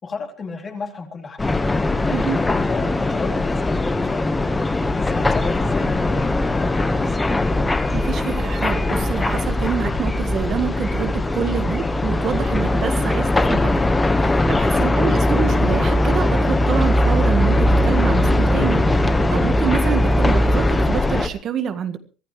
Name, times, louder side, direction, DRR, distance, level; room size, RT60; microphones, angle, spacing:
voice 1, 0.0-1.4 2.0-4.3 4.9-7.2 14.7-14.9, left 4 dB, 30° left, 3 dB, 3.9 m, -33 dB
sound 1, 1.4-21.3, left 1 dB, 15° left, 1.4 m, -20 dB
voice 2, 2.1-2.4 7.9-13.7 14.2-22.0, right 8 dB, 45° right, 9 dB, 1.7 m, -27 dB
23.5 x 15.0 x 3.3 m, 0.35 s
supercardioid pair, 110°, 0 cm